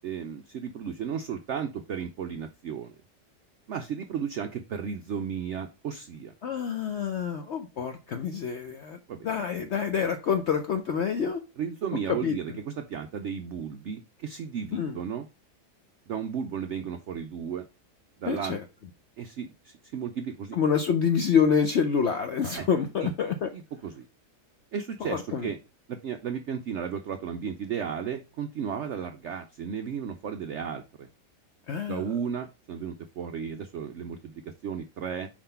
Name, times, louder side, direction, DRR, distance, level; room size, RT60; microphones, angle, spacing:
voice 1, 0.0-2.9 3.7-6.3 9.1-9.3 11.6-15.3 16.1-17.7 18.2-18.6 19.2-20.6 22.5-22.7 23.0-23.1 23.5-24.1 24.7-25.6 25.9-31.1 31.9-35.3, right 7 dB, 75° right, 0.6 m, -34 dB
voice 2, 6.4-9.0 9.2-11.4 12.1-12.4 14.7-15.0 18.3-18.6 20.5-23.5 25.0-25.5 31.7-32.1, left 7 dB, 70° left, 0.6 m, -27 dB
4.8 x 3.7 x 5.5 m
omnidirectional pair, 1.8 m